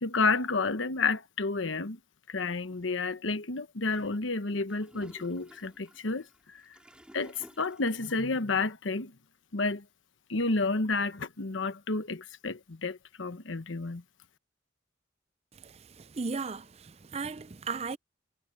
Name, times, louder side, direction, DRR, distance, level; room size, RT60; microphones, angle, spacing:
voice 1, 0.0-2.0 2.3-6.3 7.1-9.1 9.5-9.8 10.3-14.0, left 3 dB, 90° left, 1.1 m, -30 dB
Gurgling / Toilet flush, 4.7-8.4, equal, 5° right, 3.3 m, -54 dB
voice 2, 15.6-18.0, right 4 dB, 35° right, 0.5 m, -36 dB
head